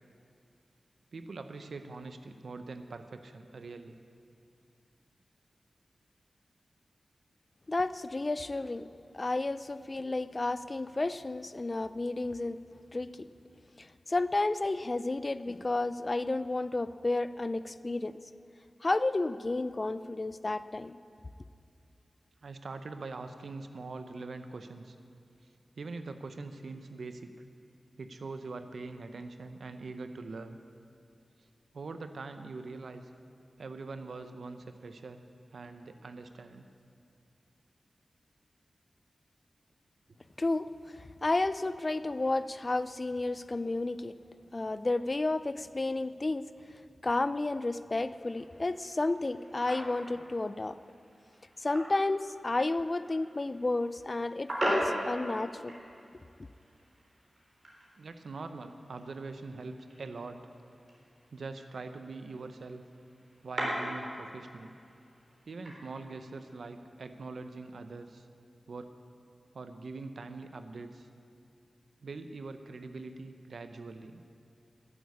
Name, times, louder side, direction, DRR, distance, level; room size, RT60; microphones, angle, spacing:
voice 1, 1.1-3.9 22.4-25.0 25.8-27.4 28.0-30.6 31.7-33.1 33.6-35.2 35.5-36.7 58.0-60.4 61.3-62.8 63.4-64.7 65.5-68.3 68.7-68.9 69.5-71.1 72.0-74.2, right 3 dB, 75° right, 8 dB, 0.7 m, -43 dB
voice 2, 7.7-8.9 9.1-12.6 12.9-13.3 13.8-18.2 18.8-21.0 40.4-44.2 44.5-46.5 47.0-50.8 51.6-55.7, left 2 dB, 35° left, 14 dB, 0.4 m, -31 dB
sound 1, 48.1-66.7, right 1 dB, 45° right, 3.8 m, -41 dB
13.0 x 7.9 x 8.4 m, 2.5 s
wide cardioid pair, 75°, 0 cm